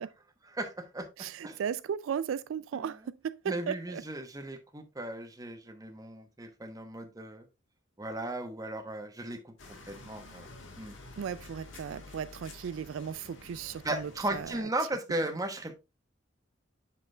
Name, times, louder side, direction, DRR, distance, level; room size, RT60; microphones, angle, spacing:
voice 1, 0.5-1.1 1.4-1.6 2.7-2.9 3.5-7.4 8.0-9.5 9.9-10.5 10.8-11.0 13.8-15.8, right 1 dB, 20° right, 1.0 m, -36 dB
voice 2, 1.2-4.0 11.2-14.5, right 7 dB, 85° right, 0.3 m, -36 dB
sound 1, 9.6-14.6, left 2 dB, 70° left, 1.5 m, -50 dB
7.8 x 6.0 x 2.3 m
head